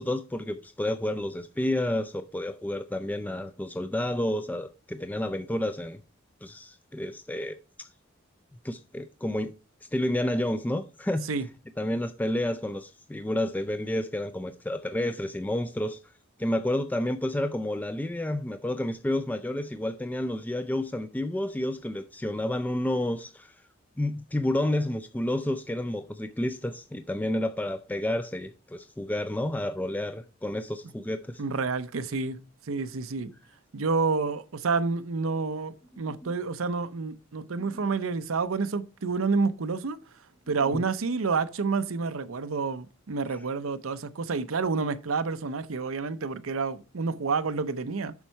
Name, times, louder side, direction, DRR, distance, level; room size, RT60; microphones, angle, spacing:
voice 1, 0.0-6.0 6.4-7.9 8.6-9.5 9.9-11.3 11.8-16.0 16.4-23.5 24.0-31.4 36.2-36.3 40.6-40.8, left 1 dB, 10° left, 0.3 m, -30 dB
voice 2, 31.4-32.4 32.7-33.3 33.7-40.0 40.5-48.1, right 4 dB, 85° right, 0.7 m, -29 dB
7.1 x 5.5 x 4.5 m
head